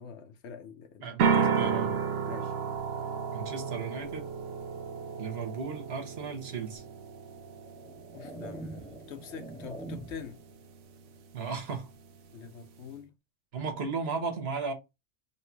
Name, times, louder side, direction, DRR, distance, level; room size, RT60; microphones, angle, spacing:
voice 1, 0.0-1.1 1.5-1.7 2.3-2.5 8.1-10.4 12.3-13.1, left 7 dB, 70° left, 0.9 m, -45 dB
voice 2, 1.0-2.0 3.3-4.3 5.2-6.8 11.3-11.9 13.5-14.7, right 5 dB, 60° right, 1.2 m, -35 dB
sound 1, 1.2-13.0, right 6 dB, 85° right, 1.0 m, -34 dB
sound 2, 6.8-6.9 7.6-10.4, right 2 dB, 10° left, 0.3 m, -43 dB
3.1 x 2.9 x 4.4 m
omnidirectional pair, 1.2 m